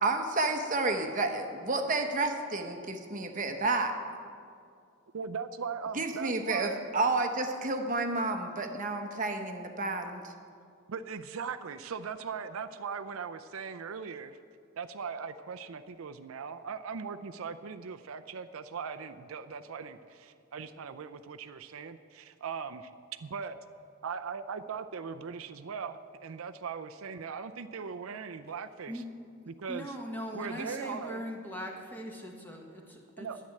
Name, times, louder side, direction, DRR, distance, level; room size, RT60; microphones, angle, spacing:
voice 1, 0.0-4.0 5.9-10.3, right 3 dB, 40° right, 5 dB, 0.9 m, -30 dB
voice 2, 5.1-6.9 10.9-14.4 14.8-22.9 23.2-23.6 24.0-29.0 29.5-29.9 30.3-31.2 33.2-33.4, right 6 dB, 70° right, 9 dB, 0.5 m, -39 dB
voice 3, 29.4-33.3, equal, 10° left, 1 dB, 1.4 m, -40 dB
10.5 x 7.7 x 9.8 m, 2.4 s
head